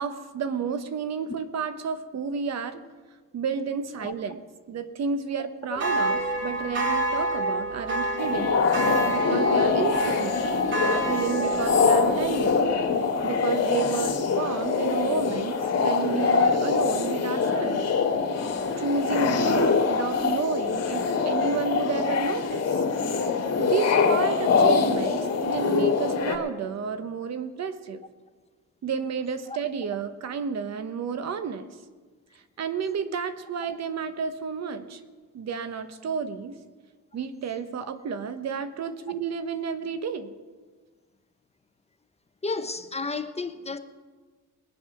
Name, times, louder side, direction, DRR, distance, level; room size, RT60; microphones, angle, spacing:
voice 1, 0.0-2.8 3.3-4.4 4.7-12.6 13.2-17.8 18.8-22.8 23.6-28.0 28.8-31.7 32.6-35.0 35.3-36.6 37.1-40.3, right 6 dB, 60° right, 1.1 m, -31 dB
sound 1, 5.8-12.5, right 2 dB, 40° right, 2.2 m, -28 dB
sound 2, 8.2-26.4, left 5 dB, 55° left, 2.0 m, -24 dB
voice 2, 42.4-43.8, left 3 dB, 20° left, 0.8 m, -32 dB
20.5 x 7.7 x 5.8 m
cardioid pair, 90°, 30 cm